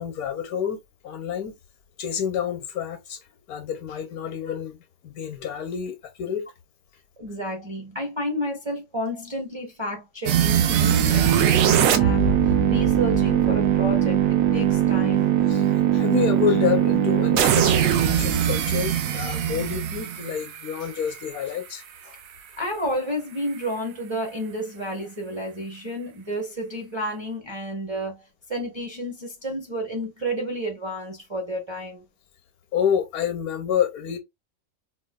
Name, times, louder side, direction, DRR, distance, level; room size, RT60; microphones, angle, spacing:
voice 1, 0.0-1.5 2.0-3.2 3.5-4.8 5.0-6.5 15.5-22.2 32.7-34.2, left 8 dB, 80° left, 1.2 m, -28 dB
voice 2, 7.2-15.3 22.6-32.0, equal, 25° right, 0.6 m, -31 dB
sound 1, 10.3-21.2, right 9 dB, 75° right, 1.0 m, -21 dB
4.1 x 2.3 x 2.2 m
omnidirectional pair, 1.6 m